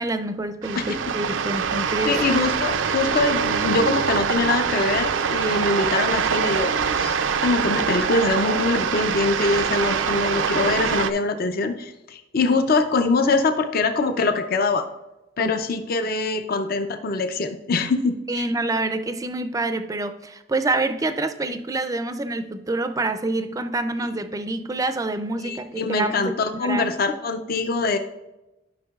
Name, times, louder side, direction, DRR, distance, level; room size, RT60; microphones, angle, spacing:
voice 1, 0.0-2.2 15.4-15.6 18.3-26.3 26.6-26.9, right 2 dB, 20° right, 0.4 m, -27 dB
sound 1, 0.6-11.1, right 6 dB, 80° right, 0.4 m, -24 dB
voice 2, 2.1-7.2 7.4-14.9 15.4-18.5 25.4-28.0, left 3 dB, 50° left, 0.5 m, -23 dB
11.5 x 5.8 x 2.4 m
head